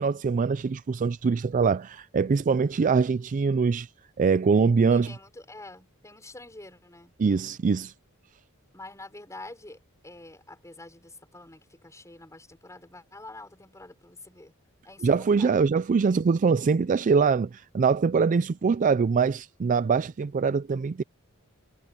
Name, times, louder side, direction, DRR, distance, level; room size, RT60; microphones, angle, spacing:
voice 1, 0.0-3.9 4.2-5.1 7.2-7.9 15.0-21.0, right 5 dB, 35° right, 0.4 m, -23 dB
voice 2, 4.9-7.1 8.7-14.5 14.8-15.7, left 2 dB, 15° left, 5.6 m, -46 dB
head